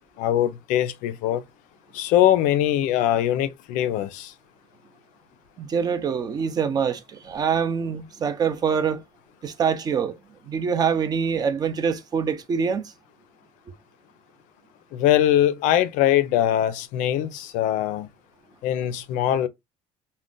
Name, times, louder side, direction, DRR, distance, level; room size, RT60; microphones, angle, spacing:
voice 1, 0.2-1.4 1.9-4.3 14.9-18.1 18.6-19.5, left 11 dB, 75° left, 0.4 m, -22 dB
voice 2, 5.6-9.0 9.4-10.2 10.5-12.9, right 6 dB, 30° right, 0.5 m, -25 dB
2.4 x 2.1 x 3.6 m
cardioid pair, 135°, 14 cm